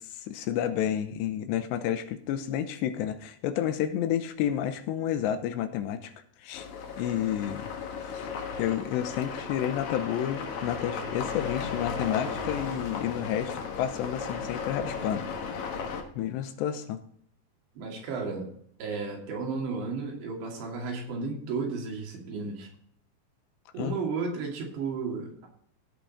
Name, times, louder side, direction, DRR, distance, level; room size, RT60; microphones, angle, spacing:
voice 1, 0.0-6.1 6.4-6.7 7.0-7.7 8.1-8.3 8.6-15.3 15.5-15.7 16.2-17.0 23.8-24.0, left 10 dB, 85° left, 9 dB, 2.9 m, -30 dB
sound 1, 6.5-16.0, left 5 dB, 60° left, 2.1 m, -35 dB
voice 2, 17.8-18.5 18.8-22.7 23.7-25.5, right 4 dB, 70° right, -1 dB, 4.6 m, -33 dB
16.5 x 6.2 x 4.2 m, 0.64 s
omnidirectional pair, 5.1 m